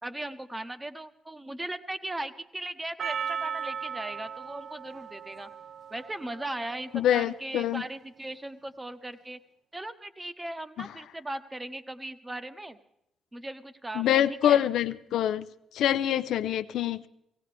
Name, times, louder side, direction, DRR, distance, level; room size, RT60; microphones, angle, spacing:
voice 1, 0.0-5.5 5.9-9.4 9.7-12.8 13.3-14.6, right 1 dB, 15° right, 10 dB, 0.9 m, -38 dB
Percussion, 3.0-7.3, right 7 dB, 55° right, 0.5 m, -37 dB
voice 2, 6.9-7.8 10.8-10.9 13.9-15.5 15.7-17.1, left 11 dB, 80° left, 12 dB, 0.5 m, -25 dB
17.5 x 17.0 x 3.4 m, 0.79 s
cardioid pair, 90°, 0 cm